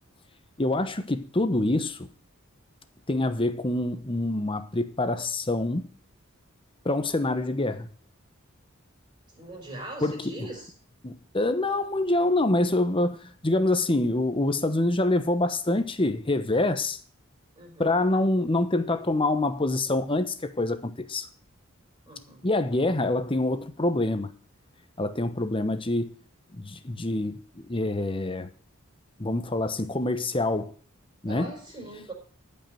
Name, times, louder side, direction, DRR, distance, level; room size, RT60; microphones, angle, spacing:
voice 1, 0.6-2.1 3.1-5.9 6.8-7.9 10.0-10.3 11.0-17.0 17.8-21.3 22.4-24.3 25.0-26.1 26.6-28.5 29.2-30.7 31.2-31.5, left 2 dB, 25° left, 1.0 m, -26 dB
voice 2, 9.4-10.7 17.5-18.0 22.0-22.4 31.2-32.1, right 1 dB, 25° right, 4.8 m, -41 dB
13.0 x 5.7 x 7.8 m
head